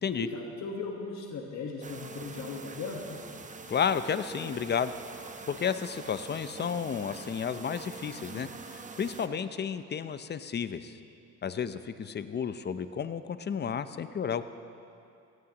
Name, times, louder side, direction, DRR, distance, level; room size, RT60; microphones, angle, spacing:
voice 1, 0.1-3.2, left 4 dB, 65° left, 1 dB, 1.5 m, -38 dB
sound 1, 1.8-9.3, right 4 dB, 25° right, 0.8 m, -44 dB
voice 2, 3.7-4.9 5.5-11.0 11.4-14.4, left 7 dB, 35° left, 12 dB, 0.6 m, -32 dB
17.0 x 16.0 x 3.0 m, 2.6 s
cardioid pair, 90°, 30 cm